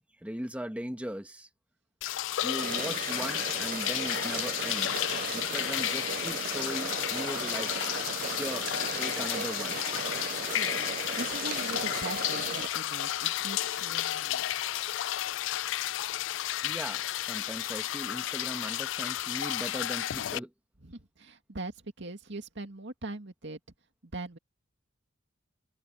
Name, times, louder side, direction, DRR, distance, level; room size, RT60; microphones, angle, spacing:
voice 1, 0.2-1.5 2.4-5.1 5.3-7.7 8.3-8.7 9.0-9.8 16.6-20.5, equal, 5° right, 1.3 m, -38 dB
sound 1, 2.0-20.4, left 13 dB, 70° left, 0.3 m, -32 dB
sound 2, 2.6-12.7, right 7 dB, 45° right, 0.3 m, -37 dB
voice 2, 10.4-10.9 11.2-14.5 20.8-23.6 24.1-24.4, right 2 dB, 65° right, 2.4 m, -41 dB
head